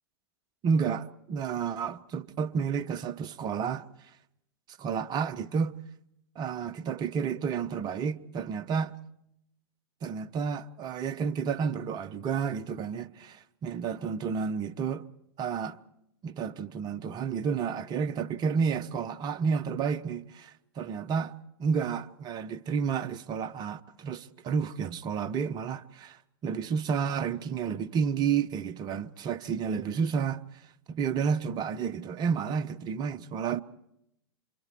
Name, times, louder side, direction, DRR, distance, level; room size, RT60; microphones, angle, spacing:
voice 1, 0.6-3.8 4.8-5.7 6.4-8.9 10.0-15.0 15.4-15.8 16.2-21.3 21.6-30.4 30.9-33.6, right 6 dB, 30° right, 1.1 m, -31 dB
29.0 x 26.0 x 4.6 m
figure-of-eight pair, 100°, 13 cm